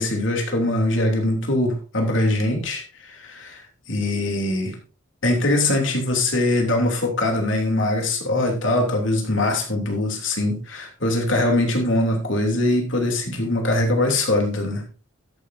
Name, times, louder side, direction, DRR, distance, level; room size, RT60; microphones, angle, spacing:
voice 1, 0.0-4.8 5.2-14.8, left 1 dB, 70° left, 2 dB, 3.1 m, -22 dB
13.0 x 9.9 x 2.7 m, 0.34 s
head